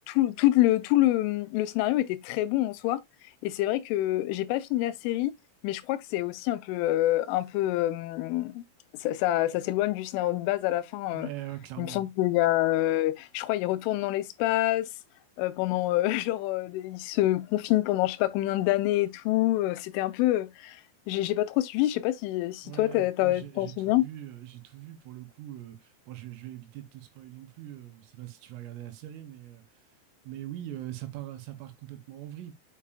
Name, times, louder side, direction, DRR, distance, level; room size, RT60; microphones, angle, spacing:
voice 1, 0.1-3.0 3.4-5.3 5.6-8.6 9.0-11.3 11.8-14.9 15.4-20.8 21.1-24.0, left 15 dB, 80° left, 2.9 m, -26 dB
voice 2, 11.1-12.1 22.6-29.6 30.3-32.5, right 13 dB, 80° right, 3.7 m, -42 dB
7.3 x 6.1 x 2.3 m
omnidirectional pair, 5.9 m